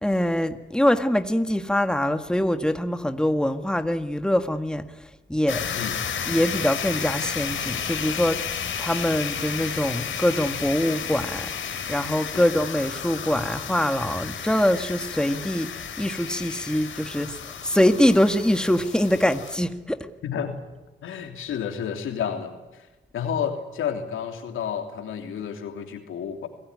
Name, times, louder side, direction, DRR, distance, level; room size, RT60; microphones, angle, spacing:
voice 1, 0.0-4.8 5.3-5.7 6.3-8.5 8.8-11.5 11.9-20.1, left 1 dB, 5° left, 8 dB, 1.8 m, -24 dB
sound 1, 5.5-19.6, left 7 dB, 70° left, 3.5 m, -32 dB
voice 2, 20.2-20.6 21.0-22.5 23.1-26.5, left 8 dB, 90° left, 5 dB, 3.1 m, -30 dB
27.5 x 18.5 x 9.7 m, 1.1 s
cardioid pair, 65°, 20 cm